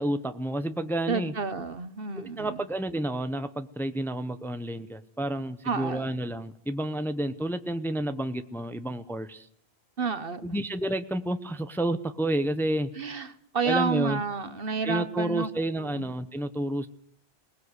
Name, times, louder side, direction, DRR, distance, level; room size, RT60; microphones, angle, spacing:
voice 1, 0.0-1.3 2.1-9.5 10.4-12.9 13.6-14.2 14.8-16.9, right 1 dB, ahead, 10 dB, 0.9 m, -30 dB
voice 2, 1.1-2.6 5.6-6.2 10.0-10.6 13.0-15.5 15.8-16.0, right 5 dB, 60° right, 12 dB, 1.5 m, -30 dB
21.5 x 19.5 x 8.1 m, 0.65 s
omnidirectional pair, 1.1 m